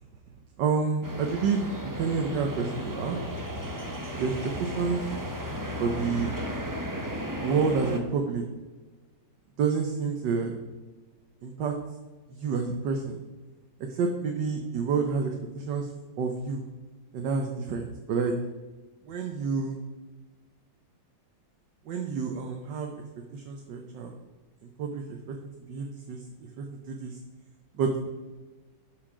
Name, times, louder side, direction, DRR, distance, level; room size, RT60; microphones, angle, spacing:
voice 1, 0.6-1.7 1.9-3.2 4.2-5.0 5.8-6.3 7.4-8.4 9.6-10.6 11.4-11.7 12.3-13.1 13.9-15.9 16.2-16.6 17.1-18.3 19.1-19.8 21.9-22.9 23.3-24.1 24.8-25.4 25.7-26.2 26.6-27.2 27.8-27.9, right 5 dB, 75° right, 3 dB, 1.6 m, -29 dB
sound 1, 1.0-8.0, equal, 15° right, 0.7 m, -35 dB
12.0 x 6.4 x 5.0 m, 1.3 s
omnidirectional pair, 2.0 m